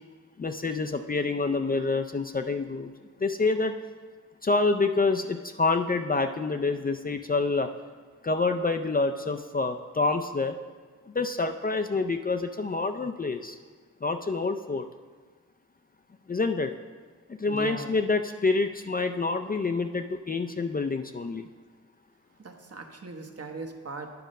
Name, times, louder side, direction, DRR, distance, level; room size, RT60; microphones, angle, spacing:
voice 1, 0.4-2.9 3.2-3.7 4.4-7.7 8.2-10.6 11.1-13.6 14.0-14.9 16.3-16.7 17.4-21.5, left 3 dB, 25° left, 6 dB, 0.4 m, -27 dB
voice 2, 17.5-17.9 22.4-24.1, right 4 dB, 45° right, 4 dB, 1.0 m, -39 dB
9.3 x 5.0 x 5.3 m, 1.4 s
cardioid pair, 60°, 33 cm